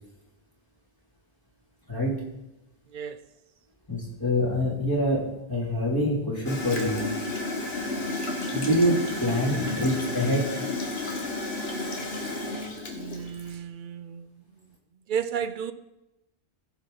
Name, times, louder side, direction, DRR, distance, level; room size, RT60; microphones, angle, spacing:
voice 1, 1.9-2.3 3.9-7.0 8.5-10.5, equal, 20° left, 2.9 m, -25 dB
Gurgling / Toilet flush, 6.5-13.5, left 2 dB, 70° left, 1.7 m, -32 dB
voice 2, 12.9-14.3 15.1-15.7, right 8 dB, 60° right, 0.6 m, -32 dB
16.0 x 5.8 x 3.9 m
omnidirectional pair, 1.1 m